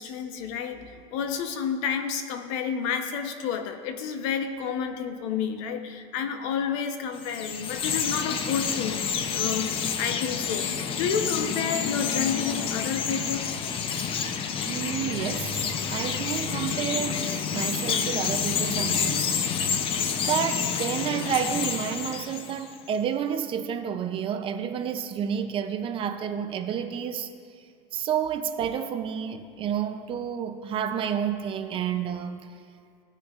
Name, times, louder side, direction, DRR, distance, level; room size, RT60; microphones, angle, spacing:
voice 1, 0.0-13.5, left 7 dB, 70° left, 0.8 m, -30 dB
Chirp tweet, 7.1-22.8, left 7 dB, 35° left, 0.6 m, -29 dB
voice 2, 14.6-19.3 20.2-27.3 27.9-32.4, right 8 dB, 30° right, 0.5 m, -30 dB
17.5 x 6.5 x 2.4 m
supercardioid pair, 140°, 17 cm